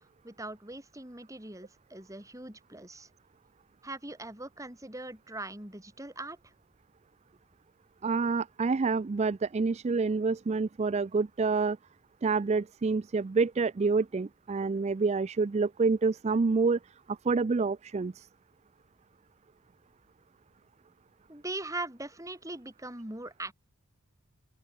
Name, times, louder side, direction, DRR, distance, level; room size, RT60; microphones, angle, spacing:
voice 1, 0.0-3.1 3.8-6.4 21.3-23.5, right 2 dB, 15° right, 3.5 m, -41 dB
voice 2, 8.0-11.8 12.2-18.3, right 4 dB, 30° right, 0.4 m, -28 dB
open air
head